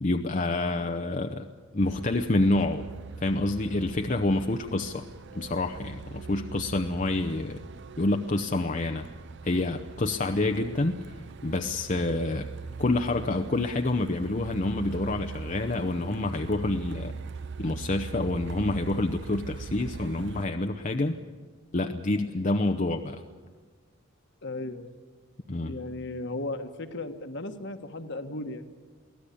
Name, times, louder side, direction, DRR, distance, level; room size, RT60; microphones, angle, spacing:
voice 1, 0.0-1.5 1.7-2.9 3.2-5.1 5.3-7.6 8.0-9.1 9.4-11.0 11.4-12.5 12.8-17.1 17.6-21.2 21.7-23.2 25.5-25.8, left 2 dB, 40° left, 5 dB, 0.8 m, -27 dB
Truck, 1.8-20.5, right 5 dB, 60° right, 0.5 m, -41 dB
voice 2, 24.4-24.9 25.7-28.6, left 2 dB, 60° left, 7 dB, 1.5 m, -36 dB
23.5 x 16.5 x 8.5 m, 1.5 s
head